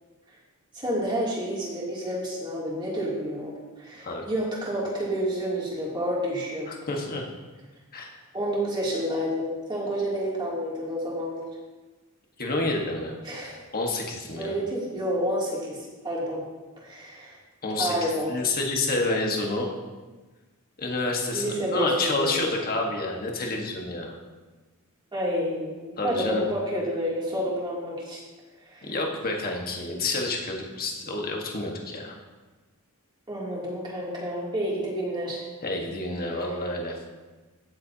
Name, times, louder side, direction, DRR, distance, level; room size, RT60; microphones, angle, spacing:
voice 1, 0.7-6.7 8.3-11.4 13.2-13.6 14.4-15.8 16.0-16.4 16.8-17.4 17.8-18.3 21.3-22.4 25.1-28.2 28.6-28.9 33.3-35.4 36.3-36.4, equal, 20° right, -6 dB, 2.9 m, -29 dB
voice 2, 6.7-7.2 7.9-8.1 12.4-13.1 13.7-14.5 17.6-19.7 20.8-24.1 26.0-26.4 28.8-32.2 35.6-37.0, left 2 dB, 45° left, 1 dB, 1.5 m, -29 dB
16.0 x 7.6 x 2.9 m, 1.2 s
head